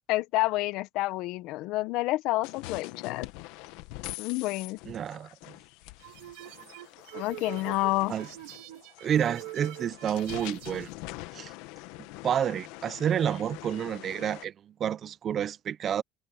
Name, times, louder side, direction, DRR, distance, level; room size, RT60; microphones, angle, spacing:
voice 1, 0.1-3.3 4.2-4.8 7.1-8.1, left 19 dB, 60° left, 0.7 m, -29 dB
sound 1, 2.4-14.4, left 19 dB, 75° left, 1.3 m, -44 dB
voice 2, 4.9-5.3 8.1-8.3 9.0-10.9 11.3-11.5 12.2-16.0, right 9 dB, 30° right, 0.5 m, -29 dB
sound 2, 6.0-10.9, right 19 dB, 85° right, 1.7 m, -44 dB
cardioid pair, 170°, 0 cm